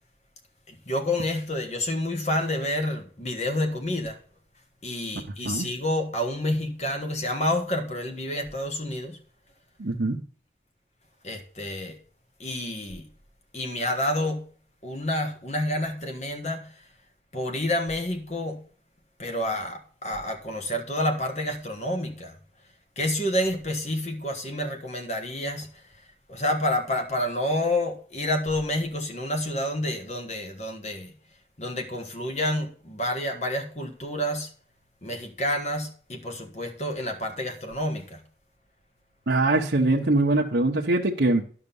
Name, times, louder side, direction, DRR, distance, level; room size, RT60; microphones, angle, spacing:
voice 1, 0.7-4.2 4.8-9.2 11.2-12.0 12.4-13.1 13.5-14.5 14.8-16.7 17.3-18.6 19.2-22.4 23.0-25.9 26.3-31.1 31.6-34.5 35.0-38.2, left 1 dB, 40° left, 1.5 m, -29 dB
voice 2, 9.8-10.2 39.3-41.4, right 2 dB, 80° right, 0.9 m, -22 dB
11.0 x 5.9 x 5.4 m
head